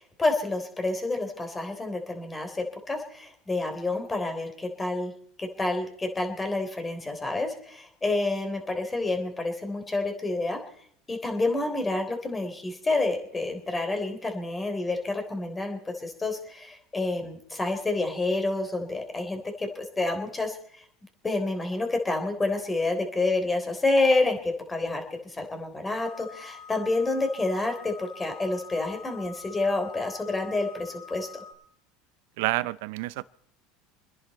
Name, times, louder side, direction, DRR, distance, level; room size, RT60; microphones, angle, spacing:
voice 1, 0.0-5.1 5.4-10.6 11.1-20.8 21.2-31.4, left 2 dB, 15° left, 5 dB, 3.5 m, -28 dB
sound 1, 26.0-31.5, left 7 dB, 85° left, 7.1 m, -46 dB
voice 2, 32.4-33.2, right 19 dB, 75° right, 19 dB, 0.6 m, -28 dB
27.0 x 10.5 x 4.3 m, 0.64 s
supercardioid pair, 100°, 0 cm